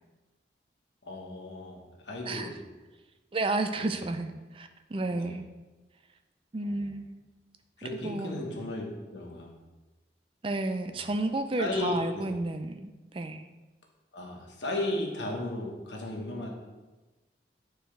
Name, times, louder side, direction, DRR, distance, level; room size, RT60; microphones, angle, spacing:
voice 1, 1.0-2.6 3.7-4.1 5.1-5.4 6.6-6.9 7.8-9.6 10.9-11.0 11.6-12.3 14.1-16.5, left 1 dB, 90° left, 0 dB, 1.4 m, -35 dB
voice 2, 3.3-5.5 6.5-7.1 8.0-8.3 10.4-13.4, right 2 dB, 30° right, 7 dB, 0.4 m, -31 dB
8.9 x 4.6 x 3.3 m, 1.2 s
head